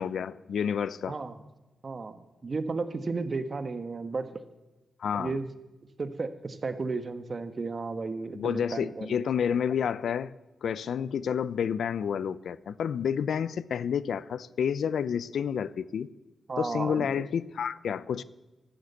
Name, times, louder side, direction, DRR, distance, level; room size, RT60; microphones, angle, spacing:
voice 1, 0.0-1.2 5.0-5.4 8.3-10.3 10.6-16.1 16.6-18.2, left 7 dB, 80° left, 0.6 m, -29 dB
voice 2, 1.8-4.3 5.2-5.4 6.0-9.2 16.5-17.1, right 4 dB, 40° right, 1.3 m, -33 dB
13.0 x 12.5 x 8.3 m
cardioid pair, 85°, 0 cm